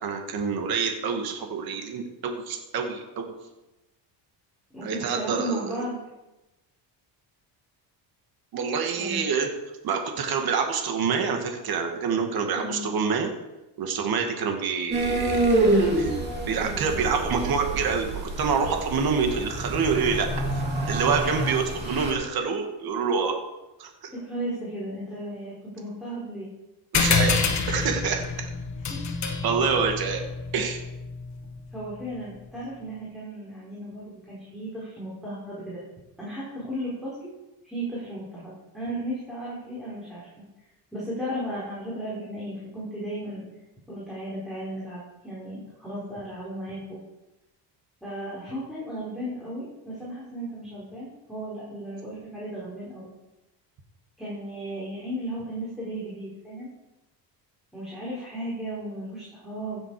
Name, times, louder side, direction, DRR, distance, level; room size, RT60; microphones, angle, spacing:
voice 1, 0.0-3.4 4.8-5.8 8.5-9.5 9.8-13.3 13.8-15.6 16.0-16.1 16.5-20.3 20.9-23.4 23.8-23.9 26.9-27.4 27.7-28.3 29.4-30.2 30.5-30.8, right 5 dB, 55° right, 4 dB, 2.1 m, -26 dB
voice 2, 4.7-6.0 9.0-9.2 12.5-12.9 24.1-26.5 28.9-29.0 30.0-30.1 31.7-35.8 36.2-37.3 37.6-40.3 40.9-43.5 43.9-47.0 48.0-53.1 54.2-56.7 57.7-59.8, right 1 dB, ahead, -9 dB, 4.7 m, -35 dB
sound 1, 14.9-22.1, right 2 dB, 25° right, 3.0 m, -27 dB
sound 2, 26.9-31.9, left 5 dB, 40° left, 1.6 m, -27 dB
15.5 x 7.8 x 4.9 m, 0.99 s
cardioid pair, 140°, 43 cm